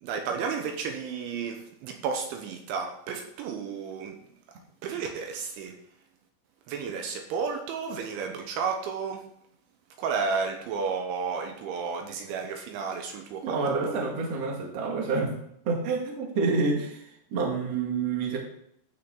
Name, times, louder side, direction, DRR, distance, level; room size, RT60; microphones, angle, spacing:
voice 1, 0.0-4.2 4.8-5.7 6.7-9.2 10.0-13.9, right 5 dB, 75° right, 4 dB, 3.2 m, -32 dB
voice 2, 13.4-15.4 15.6-18.4, right 4 dB, 45° right, 0 dB, 2.1 m, -28 dB
14.5 x 6.6 x 3.8 m, 0.72 s
omnidirectional pair, 5.8 m